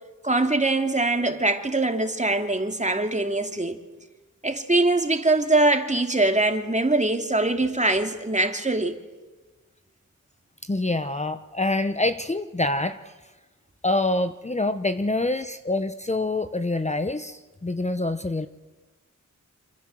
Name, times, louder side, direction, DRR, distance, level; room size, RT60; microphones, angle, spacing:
voice 1, 0.2-3.8 4.4-9.0, right 2 dB, 20° right, 2.6 m, -23 dB
voice 2, 10.6-13.1 13.8-18.5, left 2 dB, 20° left, 1.0 m, -26 dB
27.5 x 27.5 x 7.7 m
wide cardioid pair, 95°, 31 cm